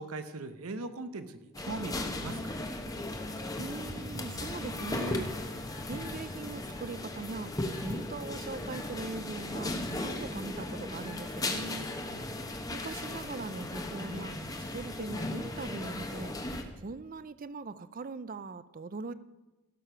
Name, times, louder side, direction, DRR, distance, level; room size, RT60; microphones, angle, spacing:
voice 1, 0.0-2.7 12.1-12.5, right 3 dB, 80° right, 11 dB, 0.9 m, -41 dB
sound 1, 1.5-16.6, left 2 dB, 15° left, 1.0 m, -37 dB
voice 2, 3.6-5.6 5.9-11.9 12.7-14.4 14.7-16.3 16.7-19.1, right 3 dB, 40° right, 15 dB, 0.5 m, -41 dB
15.5 x 6.8 x 5.8 m, 1.1 s
head